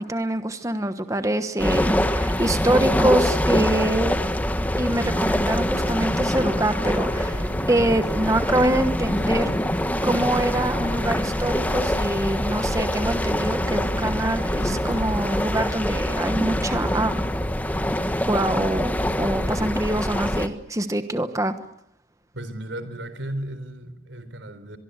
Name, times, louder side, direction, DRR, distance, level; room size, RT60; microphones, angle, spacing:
voice 1, 0.0-4.1 4.8-9.5 10.0-17.1 18.3-21.5, right 1 dB, 15° right, 9 dB, 1.2 m, -25 dB
sound 1, 1.6-20.5, equal, 10° left, 1.5 m, -24 dB
Nothing is Happening, 4.8-15.3, left 1 dB, 70° left, 2.7 m, -40 dB
voice 2, 22.3-24.8, right 1 dB, 85° right, 12 dB, 4.0 m, -34 dB
24.0 x 23.5 x 8.1 m, 0.73 s
head